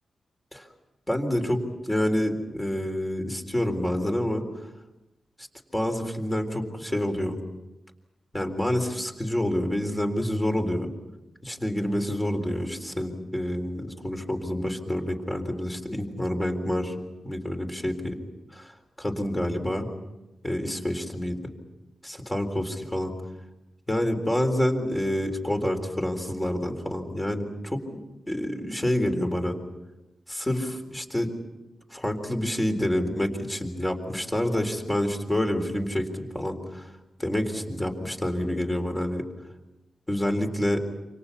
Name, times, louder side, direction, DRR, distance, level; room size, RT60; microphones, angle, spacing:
voice 1, 1.1-4.4 5.7-7.4 8.3-10.9 11.4-16.9 17.2-18.2 18.5-18.7 19.0-19.9 20.4-21.4 22.0-23.1 23.9-28.0 28.3-29.6 30.3-31.3 31.9-36.9 37.2-39.2 40.1-40.8, left 1 dB, 10° left, 4 dB, 3.9 m, -28 dB
29.0 x 27.0 x 5.8 m, 1.0 s
wide cardioid pair, 130°, 0 cm